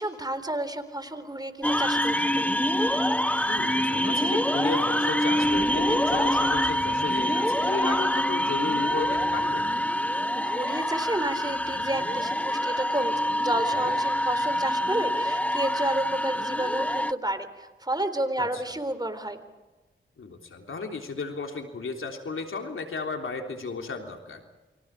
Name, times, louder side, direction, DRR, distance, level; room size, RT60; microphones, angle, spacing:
voice 1, 0.0-2.5 10.3-19.4, right 1 dB, 20° right, 10 dB, 3.8 m, -31 dB
sound 1, 1.6-17.1, equal, 5° left, 0.8 m, -25 dB
voice 2, 3.5-9.8 13.7-13.9 18.4-18.8 20.2-24.4, left 4 dB, 80° left, 3 dB, 3.5 m, -34 dB
29.5 x 25.5 x 5.0 m, 1.2 s
cardioid pair, 45°, 21 cm